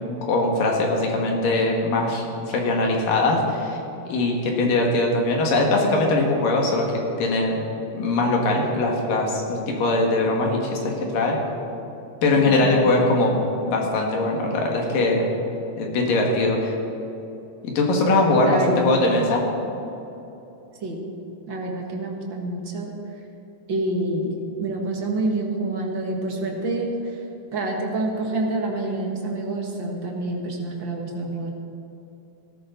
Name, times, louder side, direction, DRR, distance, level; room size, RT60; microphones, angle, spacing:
voice 1, 0.3-3.8 4.1-6.9 7.2-7.6 7.9-11.4 12.2-15.3 15.8-16.7 17.6-19.4, left 2 dB, 75° left, 0 dB, 3.6 m, -21 dB
voice 2, 12.5-12.8 18.4-18.9 20.8-21.0 21.5-22.9 23.7-27.1 27.5-31.5, right 2 dB, 50° right, 0 dB, 1.6 m, -27 dB
17.0 x 13.5 x 4.0 m, 2.9 s
omnidirectional pair, 3.9 m